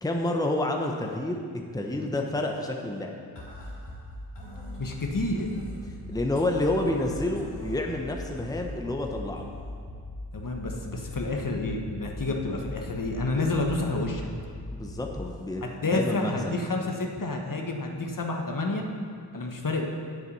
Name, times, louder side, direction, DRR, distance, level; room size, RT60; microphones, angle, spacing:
voice 1, 0.0-1.4 1.7-3.2 6.1-9.5 14.7-15.6 15.9-16.3, left 1 dB, 10° left, 2 dB, 1.0 m, -29 dB
sound 1, 3.4-15.4, left 1 dB, 70° left, 2.7 m, -40 dB
voice 2, 4.8-5.5 10.3-14.2 15.6-18.8 19.3-19.9, left 2 dB, 45° left, 1 dB, 1.3 m, -29 dB
8.1 x 7.8 x 5.6 m, 2.2 s
cardioid pair, 45°, 44 cm